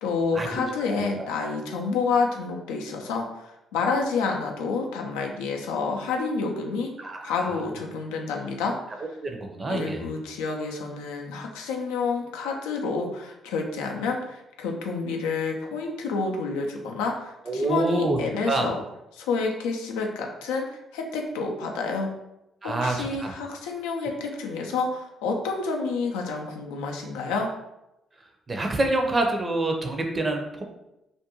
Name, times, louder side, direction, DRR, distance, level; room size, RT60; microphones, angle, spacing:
voice 1, 0.0-6.9 7.2-8.7 9.7-18.8 19.2-22.1 22.6-27.5, left 4 dB, 90° left, 2 dB, 0.3 m, -29 dB
voice 2, 0.9-1.3 7.0-7.7 9.2-10.1 17.5-18.2 18.5-18.7 22.6-23.3 28.5-30.6, right 2 dB, 35° right, 3 dB, 0.6 m, -27 dB
2.5 x 2.1 x 2.9 m, 0.90 s
supercardioid pair, 55°, 0 cm